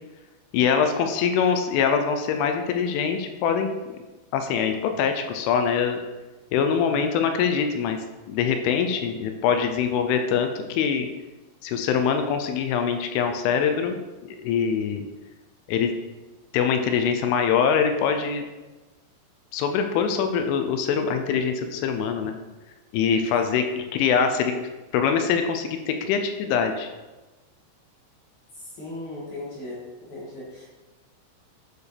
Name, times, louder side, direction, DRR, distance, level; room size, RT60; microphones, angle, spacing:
voice 1, 0.5-3.7 4.3-6.0 6.5-11.1 11.6-15.0 15.7-15.9 16.5-18.4 19.5-22.4 22.9-26.9, left 7 dB, 80° left, 6 dB, 2.9 m, -24 dB
voice 2, 28.8-29.8 30.1-30.7, left 2 dB, 50° left, -7 dB, 2.5 m, -36 dB
11.5 x 4.7 x 3.3 m, 1.2 s
omnidirectional pair, 5.8 m